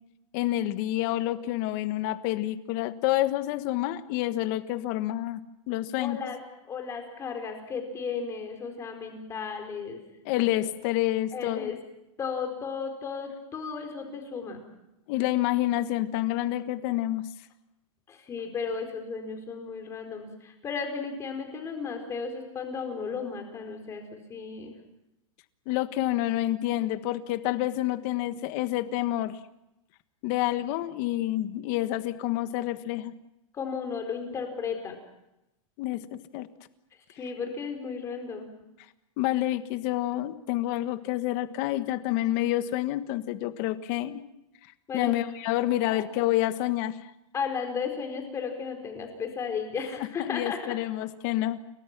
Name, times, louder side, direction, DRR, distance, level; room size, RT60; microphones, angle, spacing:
voice 1, 0.3-5.4 5.7-6.2 10.2-11.7 15.1-17.2 25.7-29.4 30.2-33.1 35.8-36.5 39.2-44.2 44.9-47.0 50.2-51.6, left 15 dB, 35° left, 11 dB, 1.4 m, -28 dB
voice 2, 6.0-6.4 6.7-10.0 10.5-10.6 11.3-11.7 12.2-14.6 18.1-24.0 24.3-24.7 33.5-34.9 37.2-38.5 44.9-45.1 45.9-46.0 47.3-50.7, left 5 dB, 15° left, 5 dB, 4.5 m, -34 dB
29.5 x 24.0 x 6.1 m, 0.90 s
supercardioid pair, 160°, 17 cm